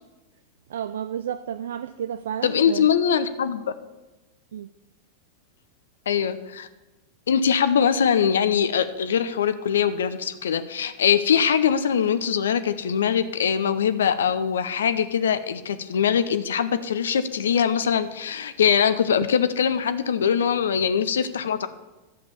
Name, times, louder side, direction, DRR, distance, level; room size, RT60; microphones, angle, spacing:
voice 1, 0.7-2.9 4.5-4.7, right 9 dB, 60° right, 11 dB, 0.4 m, -31 dB
voice 2, 2.4-3.6 6.1-6.7 7.3-21.7, left 7 dB, 65° left, 12 dB, 0.7 m, -22 dB
11.5 x 7.9 x 6.8 m, 1.1 s
figure-of-eight pair, 90°, 0 cm